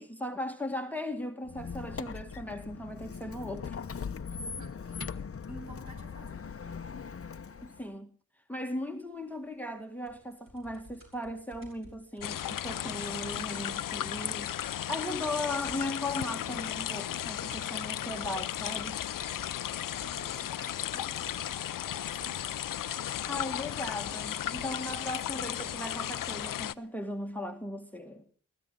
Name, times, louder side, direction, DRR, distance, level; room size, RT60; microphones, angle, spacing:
voice 1, 0.0-3.8 7.6-8.1 8.5-14.5 14.9-19.0 23.3-28.2, left 1 dB, 5° left, 2.0 m, -37 dB
Squeak, 1.5-7.9, left 6 dB, 45° left, 1.0 m, -40 dB
voice 2, 4.3-5.1 5.5-6.5 20.0-21.6 22.1-22.7, right 2 dB, 60° right, 6.9 m, -51 dB
sound 1, 10.1-15.1 15.3-15.4 15.7-16.1 16.4-16.9 17.2-26.0 26.8-26.9, equal, 40° right, 7.9 m, -55 dB
sound 2, 12.2-26.7, left 11 dB, 75° left, 0.7 m, -35 dB
23.0 x 16.0 x 3.9 m
cardioid pair, 60°, 33 cm